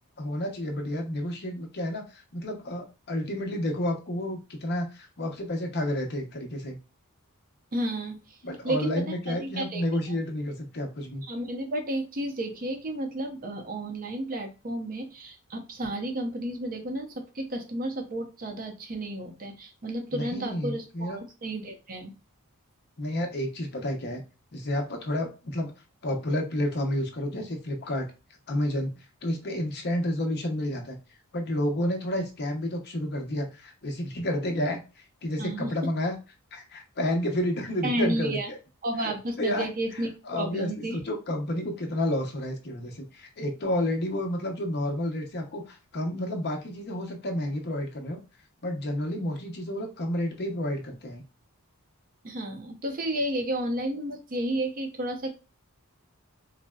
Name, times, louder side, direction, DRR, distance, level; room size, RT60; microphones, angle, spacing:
voice 1, 0.2-6.8 8.4-11.2 20.1-21.2 23.0-24.2 24.5-25.7 26.0-28.1 28.5-28.9 29.2-31.0 31.3-34.8 35.2-36.2 36.5-38.6 39.0-39.1 39.4-39.7 40.3-48.2 48.6-51.2, left 1 dB, 50° left, 3 dB, 0.7 m, -30 dB
voice 2, 7.7-8.4 8.6-9.8 11.2-22.1 35.4-35.7 37.8-38.5 38.8-41.0 52.2-55.3, right 1 dB, 40° right, 4 dB, 0.7 m, -32 dB
4.0 x 2.1 x 2.3 m, 0.30 s
head